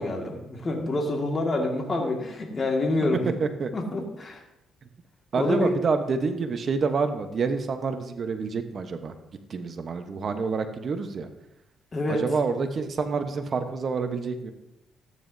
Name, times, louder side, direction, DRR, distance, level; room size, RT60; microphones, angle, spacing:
voice 1, 0.0-3.3 3.7-4.4 5.4-5.7 11.9-12.2, left 2 dB, 35° left, 1 dB, 2.0 m, -27 dB
voice 2, 3.4-3.7 5.3-9.1 9.5-11.3 12.1-14.5, right 4 dB, 50° right, 7 dB, 1.1 m, -27 dB
13.5 x 9.3 x 2.7 m, 0.89 s
cardioid pair, 90°, 0 cm